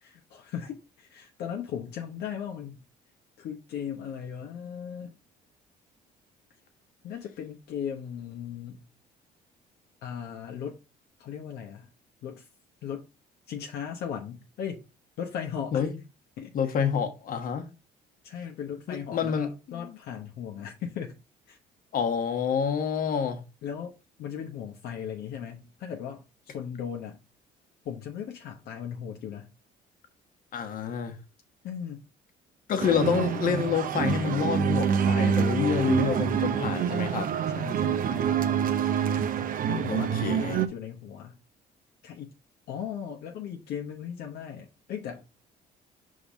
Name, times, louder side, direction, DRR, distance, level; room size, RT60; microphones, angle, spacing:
voice 1, 0.0-2.8 3.4-5.1 7.0-8.8 10.0-10.8 11.2-11.9 12.2-12.5 12.8-13.1 13.5-14.8 15.2-15.8 16.4-16.7 18.2-21.2 21.5-21.6 23.6-23.9 24.2-27.2 27.8-29.5 31.6-32.0 35.4-36.0 37.5-38.5 39.7-41.4 42.0-42.3 42.7-45.2, left 8 dB, 70° left, 1.1 m, -37 dB
voice 2, 16.5-17.7 18.9-20.0 21.9-23.4 30.5-31.2 32.7-37.3 39.9-40.6, left 7 dB, 55° left, 1.3 m, -28 dB
sound 1, 32.8-40.7, right 8 dB, 55° right, 0.8 m, -26 dB
5.4 x 3.9 x 5.0 m
cardioid pair, 110°, 17 cm